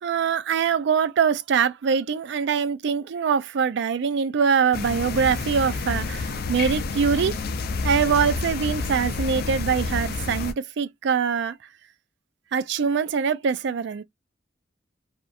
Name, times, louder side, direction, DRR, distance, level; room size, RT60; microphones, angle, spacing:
voice 1, 0.0-7.4 7.8-11.6 12.5-14.0, right 6 dB, 65° right, 0.4 m, -23 dB
sound 1, 4.7-10.5, left 4 dB, 55° left, 0.4 m, -29 dB
2.8 x 2.3 x 2.4 m
head